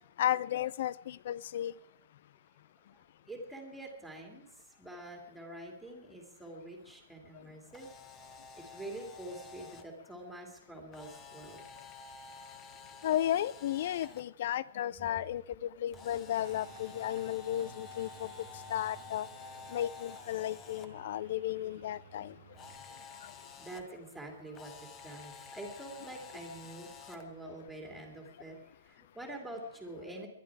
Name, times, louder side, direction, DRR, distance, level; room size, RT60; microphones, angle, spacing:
voice 1, 0.2-1.7 13.0-18.3 18.7-19.3 19.7-22.3 27.5-27.6, left 12 dB, 50° left, 22 dB, 0.5 m, -34 dB
voice 2, 2.9-4.5 4.8-7.9 8.5-11.6 23.6-24.7 25.0-30.3, right 1 dB, ahead, 1 dB, 2.5 m, -46 dB
Camera, 7.6-9.8 10.9-14.2 15.9-20.9 22.5-23.8 24.5-27.2, left 5 dB, 20° left, 1.1 m, -50 dB
sound 1, 16.3-22.8, right 7 dB, 55° right, 1.5 m, -56 dB
21.5 x 11.0 x 4.7 m, 0.81 s
hypercardioid pair, 165°, 0 cm